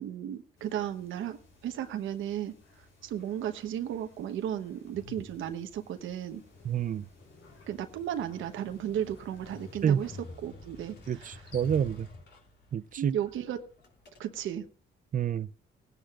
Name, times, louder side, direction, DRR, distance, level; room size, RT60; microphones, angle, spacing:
voice 1, 0.0-2.5 3.0-6.4 7.7-10.1 10.4-11.5 13.0-13.6 14.2-14.7, right 10 dB, 80° right, 1.1 m, -35 dB
sound 1, 0.6-10.2, left 3 dB, 80° left, 5.1 m, -58 dB
Motorcycle, 6.3-14.7, left 3 dB, 55° left, 3.3 m, -50 dB
voice 2, 6.6-7.0 9.8-10.0 11.1-12.1 12.7-13.1 15.1-15.5, right 8 dB, 45° right, 0.5 m, -28 dB
19.5 x 10.0 x 2.5 m
cardioid pair, 90°, 20 cm